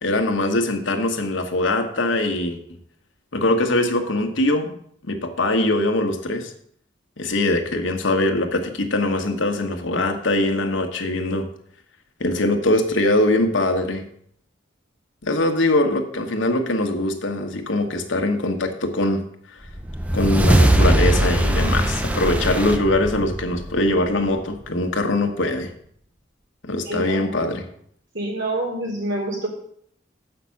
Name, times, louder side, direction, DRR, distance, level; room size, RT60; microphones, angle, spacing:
voice 1, 0.0-2.6 3.3-4.7 5.1-6.5 7.2-11.5 12.2-14.1 15.2-19.2 20.1-25.7 26.6-27.6, left 1 dB, 90° left, 5 dB, 1.3 m, -22 dB
sound 1, 19.7-24.3, right 1 dB, 5° right, 0.5 m, -20 dB
voice 2, 26.8-27.5 28.1-29.5, right 1 dB, 85° right, -3 dB, 3.5 m, -27 dB
7.5 x 5.9 x 7.0 m, 0.65 s
head